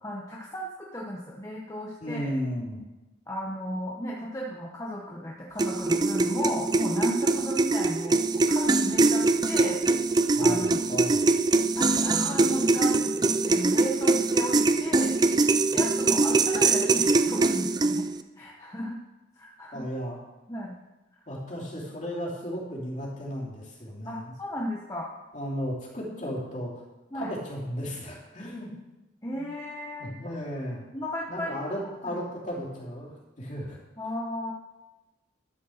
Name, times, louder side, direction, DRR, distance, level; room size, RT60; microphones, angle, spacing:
voice 1, 0.0-2.3 3.3-9.8 10.4-11.0 11.7-15.2 15.7-18.1 18.4-19.0 19.4-19.8 20.5-20.8 24.1-25.1 27.1-27.3 29.2-30.1 30.9-31.7 32.0-32.2 34.0-34.5, equal, 15° left, -3 dB, 1.0 m, -34 dB
voice 2, 2.0-2.8 10.3-11.3 19.7-20.2 21.3-24.3 25.3-26.8 27.1-28.7 29.3-29.5 30.0-30.8 31.3-33.8, equal, 40° left, -5 dB, 2.9 m, -34 dB
sound 1, 5.6-18.2, right 3 dB, 20° right, 0.4 m, -23 dB
12.5 x 5.2 x 6.5 m, 1.0 s
head